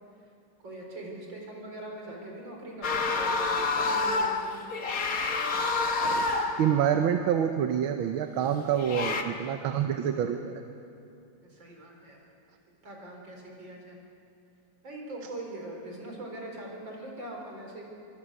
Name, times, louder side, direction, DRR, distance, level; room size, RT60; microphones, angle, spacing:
voice 1, 0.6-4.7 11.4-12.2 12.8-14.0 14.8-17.8, right 1 dB, 55° right, 0 dB, 5.0 m, -42 dB
sound 1, 2.8-6.7 8.7-9.2, left 3 dB, 45° left, 1.6 m, -28 dB
voice 2, 6.6-10.6, right 9 dB, 70° right, 6 dB, 1.7 m, -27 dB
24.5 x 24.0 x 6.4 m, 2.7 s
omnidirectional pair, 2.4 m